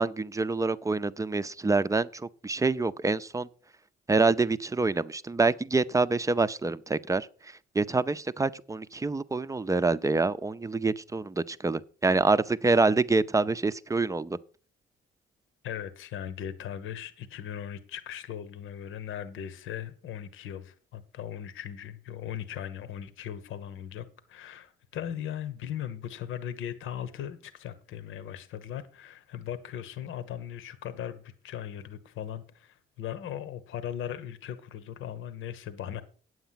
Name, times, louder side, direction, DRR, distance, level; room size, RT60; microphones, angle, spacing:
voice 1, 0.0-3.5 4.1-14.4, right 3 dB, 15° right, 0.5 m, -26 dB
voice 2, 15.6-36.0, left 10 dB, 80° left, 1.1 m, -38 dB
9.2 x 7.9 x 5.8 m
cardioid pair, 90°, 20 cm